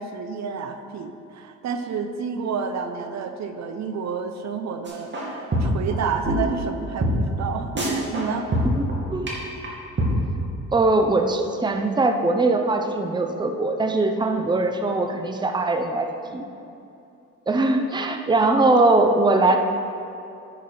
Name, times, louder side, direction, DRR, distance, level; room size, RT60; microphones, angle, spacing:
voice 1, 0.0-8.5, right 5 dB, 65° right, 7 dB, 0.7 m, -30 dB
sound 1, 4.9-5.3 5.5-5.9 6.2-6.3 6.6-6.7 7.0-7.1 7.4-7.5 7.8-8.3 8.5-8.9 9.3-9.4 9.6-9.7 10.0-10.1, right 1 dB, 40° right, 2.3 m, -23 dB
voice 2, 8.6-9.3 10.7-16.4 17.5-19.6, right 2 dB, 15° right, 5 dB, 0.7 m, -21 dB
11.0 x 6.0 x 4.3 m, 2.7 s
cardioid pair, 90°, 30 cm